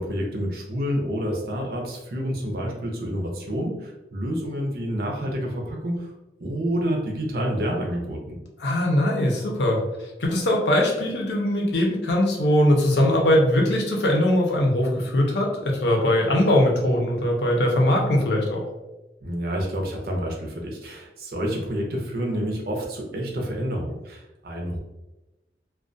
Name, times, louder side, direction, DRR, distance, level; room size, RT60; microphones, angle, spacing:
voice 1, 0.0-6.1 6.4-8.4 19.2-24.8, equal, 55° right, 0 dB, 0.5 m, -28 dB
voice 2, 8.6-9.8 10.2-18.6, left 1 dB, 75° left, 0 dB, 0.6 m, -21 dB
2.3 x 2.2 x 2.5 m, 0.99 s
head